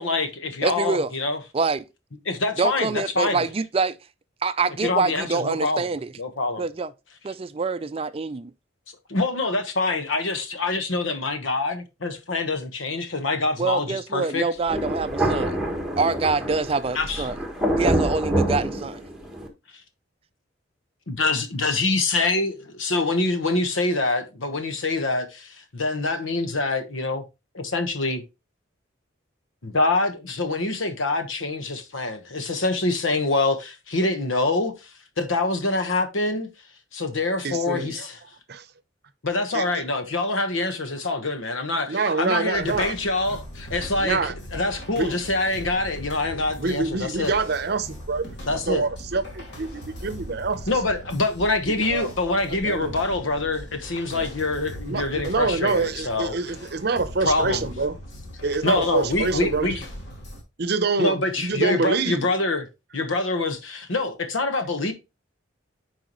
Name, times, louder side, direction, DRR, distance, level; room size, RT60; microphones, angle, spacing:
voice 1, 0.0-1.4 2.3-3.5 4.8-5.9 6.2-6.7 9.1-14.5 16.9-17.2 21.1-27.2 27.5-28.2 29.6-34.7 35.2-36.5 36.9-38.1 39.2-44.2 44.5-47.3 48.5-48.8 50.7-56.4 57.2-57.6 58.6-59.8 61.0-62.7 62.9-64.9, left 2 dB, 90° left, 1.2 m, -25 dB
voice 2, 0.6-1.1 1.5-1.9 2.6-4.0 4.4-6.1 6.6-6.9 7.2-8.5 13.6-15.6 16.0-17.4 17.8-19.0, right 4 dB, 30° right, 0.4 m, -25 dB
Thunder, 14.7-19.5, right 1 dB, 5° right, 1.2 m, -26 dB
voice 3, 37.4-38.1 38.5-38.7 39.5-39.8 41.9-43.0 43.3-43.4 44.0-44.3 44.9-45.1 46.6-48.3 48.7-49.7 50.0-50.6 51.7-52.1 52.5-52.9 54.1-54.3 54.9-57.9 58.4-59.8 60.6-62.3, right 4 dB, 55° right, 0.7 m, -26 dB
sound 1, 42.5-60.4, equal, 60° left, 2.3 m, -40 dB
9.2 x 4.7 x 3.0 m
head